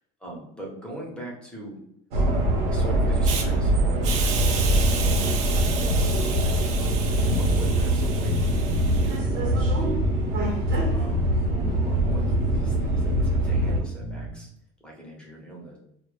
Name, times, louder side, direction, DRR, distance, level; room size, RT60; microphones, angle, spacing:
voice 1, 0.2-1.8 2.7-10.2 10.9-14.5 14.8-15.8, right 1 dB, 5° left, -2 dB, 0.7 m, -42 dB
sound 1, 2.1-13.8, right 1 dB, 75° right, 0.8 m, -24 dB
Hiss, 3.2-3.4 4.0-9.2, right 6 dB, 45° right, 0.4 m, -33 dB
sound 2, 4.7-14.3, left 3 dB, 60° left, 0.5 m, -29 dB
2.0 x 2.0 x 3.0 m, 0.75 s
cardioid pair, 150°, 17 cm